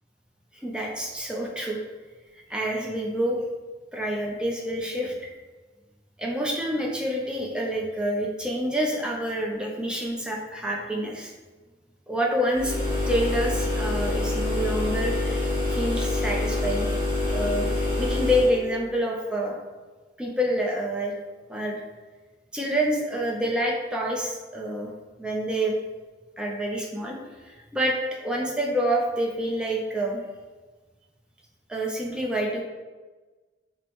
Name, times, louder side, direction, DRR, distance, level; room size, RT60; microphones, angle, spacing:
voice 1, 0.5-1.8 2.5-3.4 3.9-5.3 6.2-11.3 12.1-12.7 13.1-16.9 17.3-17.7 18.0-19.5 20.2-21.1 21.5-21.8 22.5-24.9 25.2-25.8 26.4-27.2 27.4-30.2 31.7-32.6, equal, 5° right, -2 dB, 0.4 m, -27 dB
sound 1, 12.5-18.6, left 2 dB, 30° right, 1.2 m, -26 dB
4.5 x 2.0 x 3.0 m, 1.3 s
head